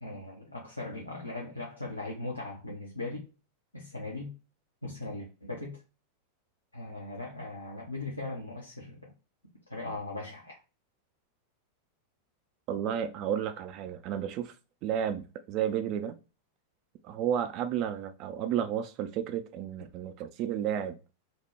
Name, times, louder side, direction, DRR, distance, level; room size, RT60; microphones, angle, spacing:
voice 1, 0.0-3.3 3.7-4.3 4.8-5.8 6.7-9.1 9.7-10.6, left 2 dB, 85° left, 0.6 m, -39 dB
voice 2, 12.7-14.5 14.8-16.2 17.0-21.0, right 9 dB, 40° right, 0.3 m, -32 dB
2.7 x 2.1 x 3.2 m
figure-of-eight pair, 90°, 0 cm